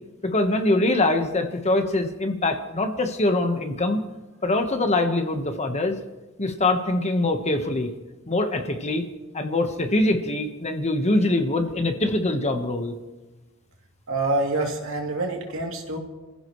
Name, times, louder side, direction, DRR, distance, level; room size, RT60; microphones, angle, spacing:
voice 1, 0.2-4.0 4.4-6.0 6.4-7.9 8.3-9.1 9.3-12.9, left 2 dB, 30° left, 6 dB, 1.3 m, -23 dB
voice 2, 14.1-16.0, right 2 dB, 65° right, 1 dB, 2.9 m, -26 dB
29.5 x 15.5 x 3.2 m, 1.1 s
head